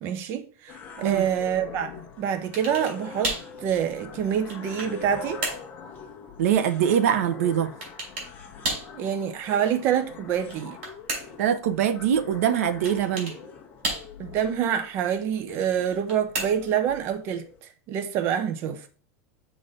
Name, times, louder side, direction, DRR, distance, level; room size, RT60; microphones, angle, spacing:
voice 1, 0.0-5.4 8.9-10.8 14.2-18.9, right 9 dB, 30° right, 0.6 m, -27 dB
sound 1, 0.7-17.6, left 6 dB, 20° left, 1.0 m, -43 dB
sound 2, 2.5-3.0 3.2-3.5 4.2-5.0 5.4-5.7 7.8-8.3 8.6-8.9 10.3-11.5 12.8-13.4 13.8-14.4 15.8-16.8, right 2 dB, 60° right, 4.1 m, -32 dB
voice 2, 6.4-7.7 11.4-13.3, right 9 dB, 80° right, 0.8 m, -23 dB
6.5 x 4.1 x 5.1 m
supercardioid pair, 180°, 8 cm